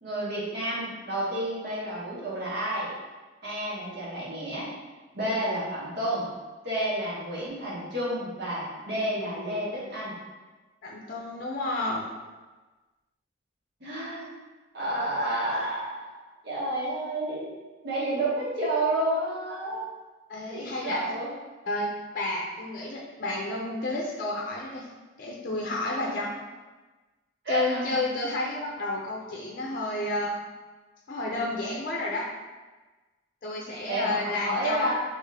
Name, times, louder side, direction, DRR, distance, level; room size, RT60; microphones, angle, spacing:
voice 1, 0.0-2.9 3.4-4.7 5.1-6.3 6.6-10.2 13.8-14.3 14.7-16.1 16.4-17.5 17.8-19.8 20.5-21.3 26.0-26.2 27.4-28.0 33.9-34.9, right 1 dB, 60° right, -6 dB, 1.3 m, -30 dB
voice 2, 10.8-12.1 20.3-21.0 21.7-24.9 25.2-26.3 27.5-30.3 31.1-32.3 33.4-34.9, left 2 dB, 50° left, -2 dB, 0.5 m, -31 dB
3.5 x 3.1 x 3.3 m, 1.2 s
head